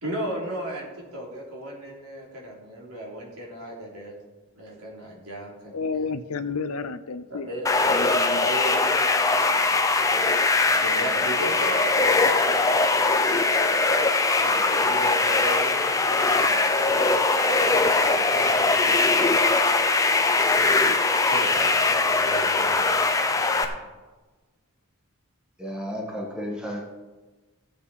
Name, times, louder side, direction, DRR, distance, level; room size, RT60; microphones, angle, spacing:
voice 1, 0.0-4.1 4.5-6.1 7.3-8.0 8.4-9.1 9.3-10.3 10.6-13.7 14.4-16.6 16.9-17.2 17.5-17.6 17.9-19.4 20.5-20.8 21.3-23.7, right 1 dB, 85° right, 3.2 m, -36 dB
voice 2, 5.7-7.5 7.9-8.5, left 4 dB, 85° left, 0.6 m, -31 dB
sound 1, 7.7-23.7, left 3 dB, 15° left, 0.6 m, -21 dB
voice 3, 25.6-26.9, equal, 5° right, 1.6 m, -33 dB
15.0 x 7.8 x 4.2 m
head